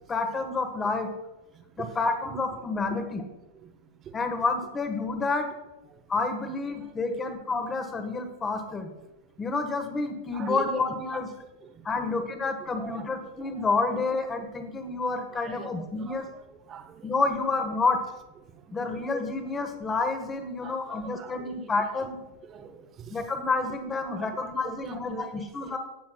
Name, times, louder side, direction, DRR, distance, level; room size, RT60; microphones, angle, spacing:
voice 1, 0.1-1.1 1.8-3.2 4.1-5.5 6.1-8.9 9.4-11.3 11.8-16.3 17.0-18.0 18.7-22.2 23.1-25.8, left 3 dB, 20° left, 7 dB, 1.4 m, -29 dB
voice 2, 1.5-1.9 3.6-3.7 4.0-4.2 5.9-6.0 6.7-7.3 10.3-10.7 11.1-11.2 11.6-12.3 12.7-13.6 15.3-16.2 16.7-17.1 18.5-19.1 20.6-21.7 22.4-23.2 24.1-25.8, right 7 dB, 30° right, 8 dB, 0.9 m, -44 dB
18.0 x 7.2 x 2.3 m, 1.0 s
figure-of-eight pair, 90°, 0 cm